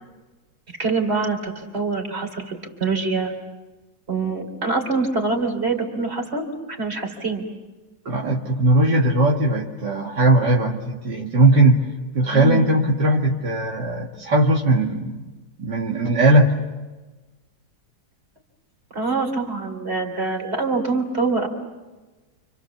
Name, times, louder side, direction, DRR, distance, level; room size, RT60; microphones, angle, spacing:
voice 1, 0.8-3.3 4.1-7.4 12.3-12.7 18.9-21.5, right 3 dB, 35° right, 4 dB, 3.9 m, -25 dB
voice 2, 8.1-11.8 12.1-15.2 15.6-16.5, right 1 dB, 65° right, -2 dB, 2.6 m, -18 dB
29.5 x 26.5 x 7.2 m, 1.2 s
omnidirectional pair, 2.0 m